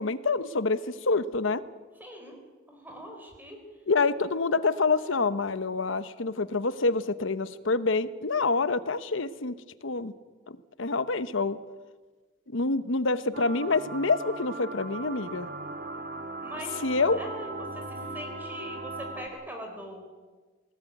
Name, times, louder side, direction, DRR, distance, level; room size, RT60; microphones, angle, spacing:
voice 1, 0.0-1.6 3.9-9.6 9.8-10.1 10.5-11.6 12.5-15.5 16.8-17.2, left 3 dB, 70° left, 14 dB, 1.0 m, -27 dB
voice 2, 2.0-2.4 2.7-3.6 16.4-20.0, equal, 10° right, 2 dB, 4.1 m, -42 dB
sound 1, 13.3-19.3, right 2 dB, 45° right, 1.9 m, -38 dB
19.5 x 18.5 x 9.2 m, 1.4 s
head